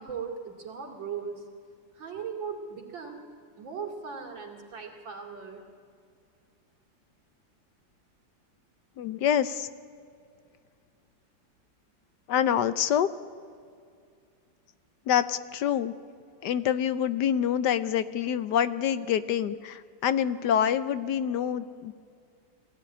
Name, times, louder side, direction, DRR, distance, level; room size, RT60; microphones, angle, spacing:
voice 1, 0.0-1.4 1.9-3.2 3.6-5.6, right 6 dB, 80° right, 2 dB, 3.5 m, -38 dB
voice 2, 9.0-9.7 12.3-13.1 15.1-15.9 16.4-21.9, left 9 dB, 70° left, 14 dB, 1.3 m, -26 dB
22.0 x 16.0 x 9.8 m, 2.3 s
omnidirectional pair, 2.0 m